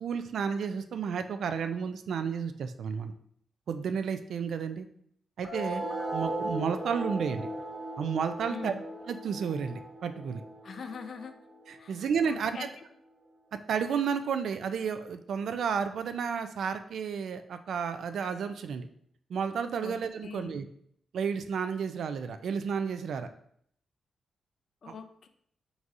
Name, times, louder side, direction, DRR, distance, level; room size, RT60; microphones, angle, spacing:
voice 1, 0.0-3.1 3.7-4.9 5.4-5.8 6.1-7.5 8.0-8.7 9.1-10.4 11.7-12.7 13.7-18.9 19.3-20.7 21.1-23.3 24.9-25.0, right 6 dB, 70° right, 9 dB, 0.3 m, -32 dB
sound 1, 5.4-12.4, right 1 dB, 15° right, 1.2 m, -37 dB
voice 2, 8.5-8.8 10.6-11.4 11.8-12.8 19.8-20.6 24.8-25.3, left 5 dB, 50° left, 8 dB, 0.4 m, -43 dB
4.6 x 4.0 x 2.5 m, 0.67 s
wide cardioid pair, 150°, 0 cm